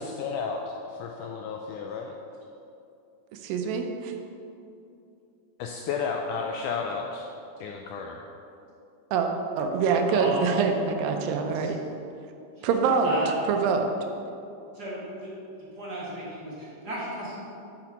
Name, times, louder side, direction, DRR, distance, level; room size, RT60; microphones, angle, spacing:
voice 1, 0.0-2.1 5.6-7.3 7.6-8.3, left 5 dB, 85° left, 1 dB, 1.8 m, -32 dB
voice 2, 3.4-4.1 9.1-9.3 9.6-11.8 12.6-13.1 13.5-13.9, right 5 dB, 80° right, 4 dB, 2.4 m, -25 dB
voice 3, 10.1-10.5 11.2-11.7 12.6-12.7 13.0-13.3 14.7-15.3 15.8-17.4, right 1 dB, 40° right, -7 dB, 1.5 m, -34 dB
6.9 x 5.8 x 5.8 m, 2.7 s
omnidirectional pair, 4.0 m